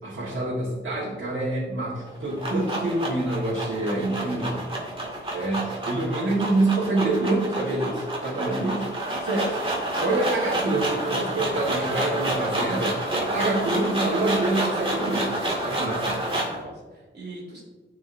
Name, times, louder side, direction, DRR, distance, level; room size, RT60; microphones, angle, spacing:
voice 1, 0.0-4.5 5.3-8.8 9.2-15.4 15.6-16.3, right 2 dB, 85° right, -6 dB, 1.6 m, -26 dB
sound 1, 2.0-16.6, right 1 dB, 25° right, 2.1 m, -29 dB
voice 2, 4.0-4.6 8.4-8.6 16.2-17.6, right 2 dB, 60° right, -3 dB, 2.4 m, -42 dB
13.0 x 4.9 x 2.6 m, 1.3 s
wide cardioid pair, 105°, 20 cm